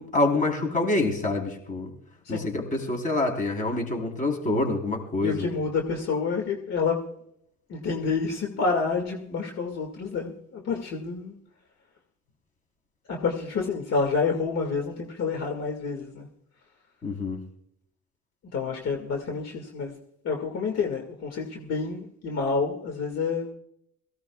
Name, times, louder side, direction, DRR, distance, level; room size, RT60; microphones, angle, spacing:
voice 1, 0.0-1.9 2.3-5.5 17.0-17.4, left 2 dB, 25° left, 2 dB, 3.9 m, -26 dB
voice 2, 5.2-7.0 7.7-11.3 13.1-16.3 18.5-19.9 20.2-23.5, left 4 dB, 60° left, 2 dB, 2.1 m, -28 dB
23.0 x 16.5 x 2.4 m, 0.72 s
cardioid pair, 165°, 29 cm